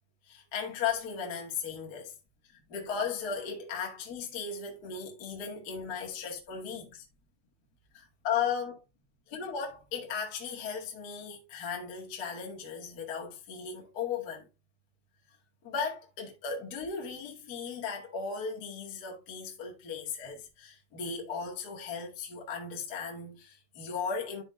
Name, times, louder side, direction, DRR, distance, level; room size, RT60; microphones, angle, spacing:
voice 1, 0.2-2.1 2.7-7.0 7.9-8.8 9.3-14.5 15.6-24.4, left 6 dB, 85° left, 0.8 m, -36 dB
12.5 x 4.5 x 2.6 m
omnidirectional pair, 5.4 m